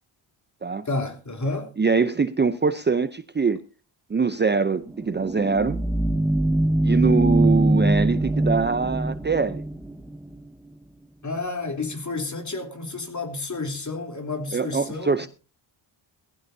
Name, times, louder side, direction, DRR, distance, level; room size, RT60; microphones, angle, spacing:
voice 1, 0.9-1.7 11.2-15.3, left 3 dB, 35° left, 3.6 m, -30 dB
voice 2, 1.8-3.6 4.1-5.8 6.8-9.6 14.5-15.3, right 5 dB, 20° right, 0.6 m, -23 dB
sound 1, 4.9-10.4, right 1 dB, 5° right, 1.0 m, -23 dB
19.0 x 15.0 x 2.7 m
cardioid pair, 70°, 48 cm